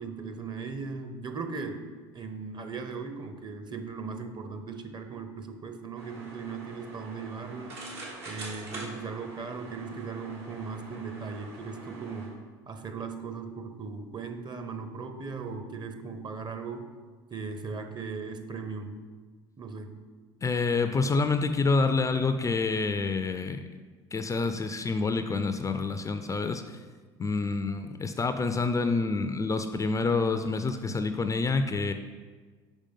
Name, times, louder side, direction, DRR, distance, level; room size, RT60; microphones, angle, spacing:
voice 1, 0.0-1.9 2.1-7.9 8.3-12.4 12.7-16.9 17.3-19.0 19.6-20.0, right 4 dB, 35° right, 7 dB, 0.8 m, -38 dB
sound 1, 6.0-12.3, right 2 dB, 80° right, 1.9 m, -45 dB
voice 2, 20.4-23.7 24.1-26.8 27.2-31.9, left 4 dB, 25° left, 9 dB, 0.4 m, -27 dB
5.2 x 4.9 x 5.4 m, 1.4 s
hypercardioid pair, 70°, 14 cm